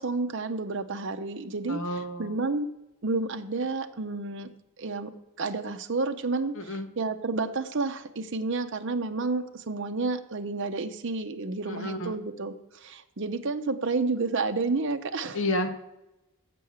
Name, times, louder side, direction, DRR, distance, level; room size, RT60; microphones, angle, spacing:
voice 1, 0.0-2.7 3.0-4.5 4.8-5.1 5.4-15.4, right 3 dB, 55° right, 7 dB, 0.7 m, -30 dB
voice 2, 1.7-2.3 6.6-6.9 11.6-12.2 15.3-15.7, left 1 dB, 60° left, 7 dB, 1.0 m, -30 dB
7.7 x 6.2 x 7.1 m, 0.91 s
head